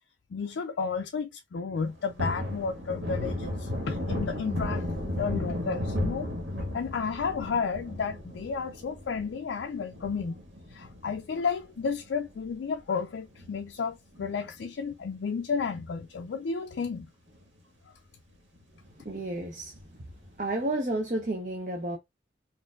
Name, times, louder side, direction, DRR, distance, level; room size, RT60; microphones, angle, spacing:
voice 1, 0.3-6.3 6.7-10.4 10.7-17.1, left 5 dB, 75° left, 0.4 m, -32 dB
Thunder, 1.8-12.5 12.9-13.0 13.3-14.8 15.1-15.3 15.6-16.4 16.8-16.9 17.3-17.4 19.7-20.3, left 1 dB, 85° right, 1.4 m, -35 dB
voice 2, 19.0-19.8 20.4-22.0, right 1 dB, 45° right, 0.7 m, -31 dB
4.3 x 2.6 x 2.3 m
head